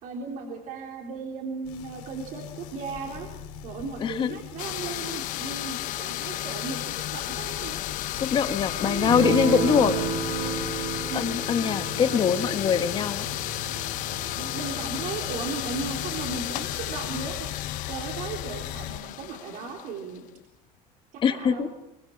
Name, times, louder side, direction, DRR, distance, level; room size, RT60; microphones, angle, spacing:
voice 1, 0.0-3.3 3.6-7.8 8.8-9.6 11.1-11.3 12.0-12.2 14.4-17.5 17.9-20.3 21.3-21.7, right 4 dB, 55° right, 1 dB, 3.9 m, -36 dB
sound 1, 1.6-19.0, left 11 dB, 80° left, 3.3 m, -39 dB
voice 2, 4.0-4.4 8.1-9.9 11.1-13.2 21.2-21.7, left 7 dB, 30° left, 9 dB, 1.5 m, -23 dB
sound 2, 4.6-20.3, left 15 dB, 55° left, 1.1 m, -33 dB
Guitar, 9.0-15.6, right 6 dB, 70° right, 5.2 m, -32 dB
24.5 x 24.0 x 7.3 m, 0.86 s
cardioid pair, 165°, 16 cm